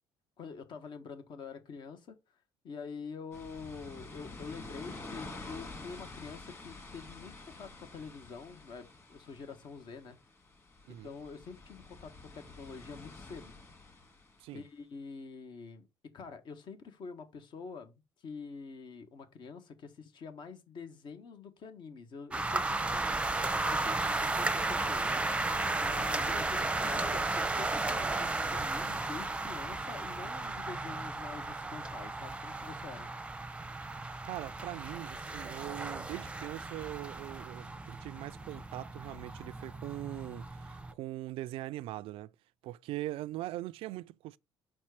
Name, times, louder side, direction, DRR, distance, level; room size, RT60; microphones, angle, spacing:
voice 1, 0.4-2.2 2.6-10.2 10.9-13.5 14.5-33.1, left 5 dB, 55° left, 1.5 m, -46 dB
sound 1, 3.3-14.5, left 3 dB, 25° left, 2.5 m, -49 dB
sound 2, 22.3-40.9, right 2 dB, 10° right, 0.7 m, -34 dB
voice 2, 34.2-42.3 42.6-44.4, right 16 dB, 70° right, 0.4 m, -41 dB
5.8 x 4.3 x 4.9 m
cardioid pair, 100°, 10 cm